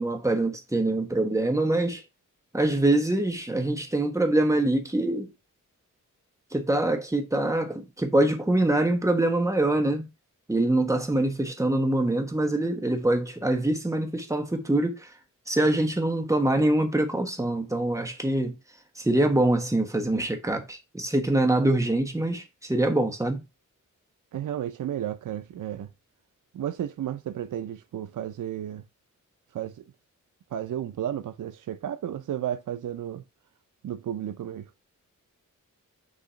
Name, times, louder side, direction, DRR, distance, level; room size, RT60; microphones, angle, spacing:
voice 1, 0.0-2.0 2.5-5.3 6.5-10.1 10.5-15.1 15.5-18.6 19.0-23.4, right 1 dB, 10° right, 1.2 m, -24 dB
voice 2, 24.3-25.9 26.5-28.8 29.5-29.8 30.5-33.2 33.8-34.7, right 10 dB, 70° right, 0.5 m, -33 dB
6.5 x 2.9 x 5.6 m
wide cardioid pair, 110°, 32 cm